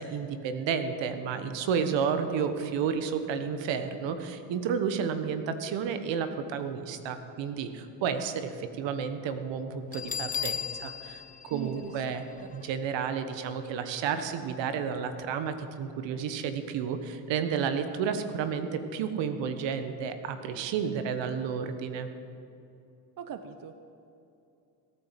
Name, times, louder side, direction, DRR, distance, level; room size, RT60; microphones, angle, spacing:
voice 1, 0.0-12.2 12.5-22.1, right 6 dB, 70° right, 9 dB, 1.4 m, -31 dB
Bell, 9.9-12.6, left 7 dB, 20° left, 0.8 m, -36 dB
voice 2, 11.5-12.0 23.2-23.7, right 8 dB, 45° right, 10 dB, 0.9 m, -41 dB
16.5 x 9.3 x 7.6 m, 2.7 s
supercardioid pair, 85°, 46 cm